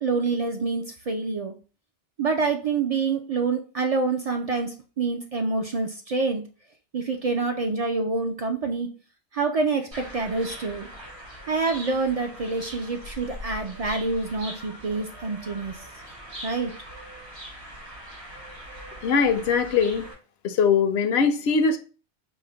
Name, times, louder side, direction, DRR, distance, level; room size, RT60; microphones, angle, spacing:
voice 1, 0.0-1.5 2.2-6.4 6.9-8.9 9.3-10.9 11.5-15.7 16.4-16.7, right 4 dB, 55° right, 0.4 m, -27 dB
sound 1, 9.9-20.1, equal, 80° right, 2.9 m, -41 dB
voice 2, 19.0-20.0 20.4-21.8, left 5 dB, 75° left, 0.8 m, -21 dB
4.9 x 2.1 x 3.8 m
omnidirectional pair, 1.1 m